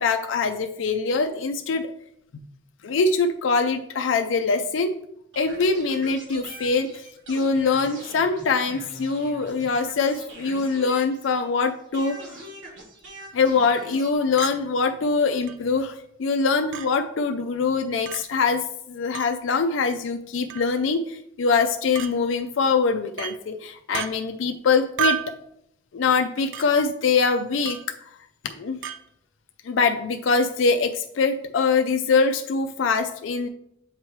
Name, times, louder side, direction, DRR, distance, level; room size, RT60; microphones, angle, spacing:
voice 1, 0.0-1.9 2.8-5.0 5.4-12.2 13.3-25.3 25.9-27.8 28.4-28.8 29.6-33.5, left 4 dB, 85° left, 6 dB, 0.4 m, -23 dB
sound 1, 5.3-11.6 11.9-14.1, right 1 dB, 65° right, 1.4 m, -43 dB
Chink clink, 14.4-14.6 15.5-15.6 16.7-16.9 18.1-18.2 19.1-19.3 20.5-20.7 21.9-22.1 23.2-23.4 23.9-24.1 25.0-25.3 26.5-26.7 27.6-27.9 28.8-29.0, right 11 dB, 90° right, 0.5 m, -29 dB
7.4 x 3.1 x 4.5 m, 0.74 s
head